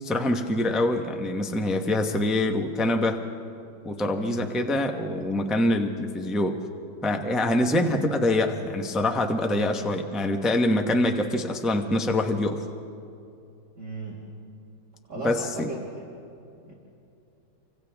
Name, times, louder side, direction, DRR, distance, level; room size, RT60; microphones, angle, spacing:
voice 1, 0.0-3.2 3.8-6.6 7.0-12.6 15.2-15.7, left 1 dB, ahead, 3 dB, 0.5 m, -25 dB
voice 2, 13.8-14.2 15.1-16.1 16.6-16.7, right 3 dB, 35° right, -4 dB, 2.8 m, -37 dB
29.5 x 25.0 x 3.6 m, 2.7 s
omnidirectional pair, 2.3 m